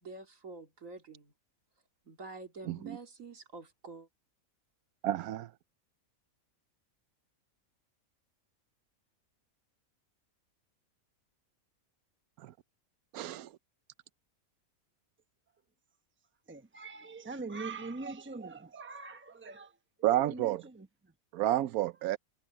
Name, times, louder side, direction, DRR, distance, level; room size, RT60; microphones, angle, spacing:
voice 1, 0.0-1.3 2.1-4.1, right 3 dB, 65° right, 2.6 m, -47 dB
voice 2, 2.7-3.0 5.0-5.5 12.4-12.5 13.1-13.5 20.0-20.6 21.3-22.2, right 13 dB, 90° right, 1.1 m, -30 dB
voice 3, 16.5-19.7 20.1-20.9, right 3 dB, 10° right, 1.0 m, -42 dB
omnidirectional pair, 1.5 m